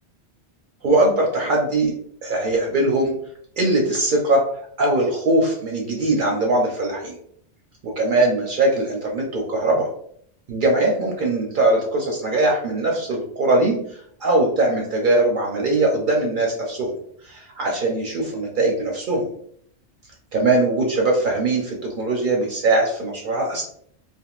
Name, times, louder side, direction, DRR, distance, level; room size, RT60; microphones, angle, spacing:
voice 1, 0.8-1.9 2.2-3.1 3.6-4.4 4.8-7.2 7.8-9.9 10.5-16.9 17.2-19.3 20.3-23.6, right 2 dB, 55° right, 0 dB, 0.6 m, -21 dB
3.5 x 2.5 x 2.3 m, 0.65 s
omnidirectional pair, 1.1 m